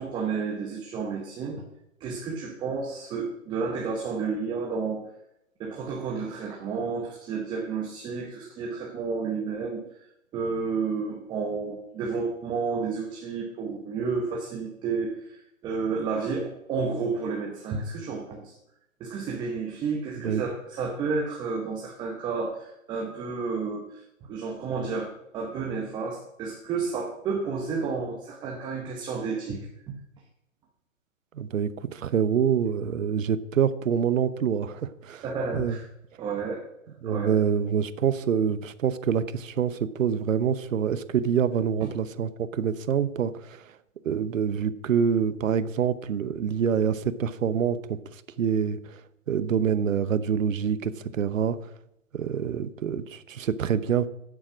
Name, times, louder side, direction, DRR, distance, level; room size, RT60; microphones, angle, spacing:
voice 1, 0.0-1.6 2.0-5.1 5.6-9.9 10.3-18.6 19.0-30.0 35.2-35.9 36.2-36.6 37.0-37.4 41.8-41.9, right 4 dB, 10° right, 1 dB, 0.8 m, -31 dB
voice 2, 31.3-35.2 35.5-35.7 37.0-43.6 44.0-48.0 48.4-48.8 49.3-51.6 52.1-54.1, right 7 dB, 70° right, 15 dB, 1.0 m, -26 dB
10.5 x 7.4 x 6.1 m, 0.82 s
hypercardioid pair, 145°, 40 cm